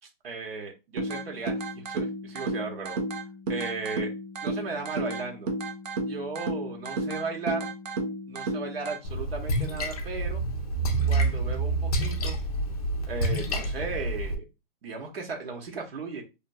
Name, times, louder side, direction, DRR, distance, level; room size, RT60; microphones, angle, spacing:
voice 1, 0.2-3.0 3.5-4.1 4.4-5.5 6.0-7.7 8.3-10.4 11.1-12.4 13.1-14.4 14.8-16.2, right 4 dB, 80° right, 1 dB, 1.2 m, -36 dB
sound 1, 1.0-9.0, right 2 dB, 45° right, 0.6 m, -33 dB
Splash splatter, 9.0-14.3, right 2 dB, 40° left, 0.6 m, -28 dB
2.8 x 2.6 x 2.2 m, 0.26 s
hypercardioid pair, 175°, 30 cm